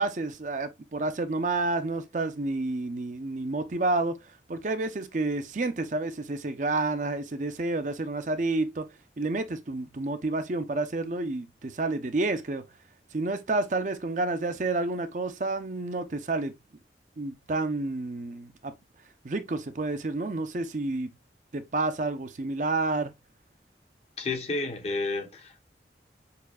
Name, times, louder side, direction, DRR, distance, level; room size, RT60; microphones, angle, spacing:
voice 1, 0.0-4.2 4.5-8.8 9.2-12.6 13.1-16.5 17.2-18.7 19.2-21.1 21.5-23.1, right 2 dB, 45° right, 0.5 m, -29 dB
voice 2, 24.2-25.6, left 3 dB, 35° left, 0.7 m, -31 dB
6.6 x 2.5 x 2.3 m
head